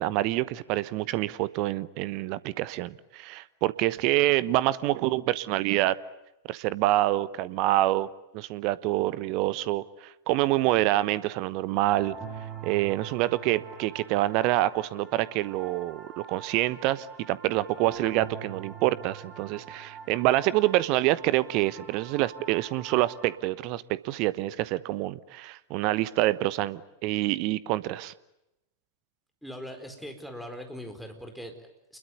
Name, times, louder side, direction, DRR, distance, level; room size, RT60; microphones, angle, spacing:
voice 1, 0.0-6.0 6.5-8.1 8.3-12.1 12.6-28.1, right 16 dB, 45° right, 18 dB, 1.0 m, -26 dB
sound 1, 11.9-23.4, right 6 dB, 25° right, 4.6 m, -44 dB
voice 2, 29.4-32.0, equal, ahead, 6 dB, 4.5 m, -41 dB
28.5 x 22.0 x 9.5 m, 0.90 s
figure-of-eight pair, 90°, 0 cm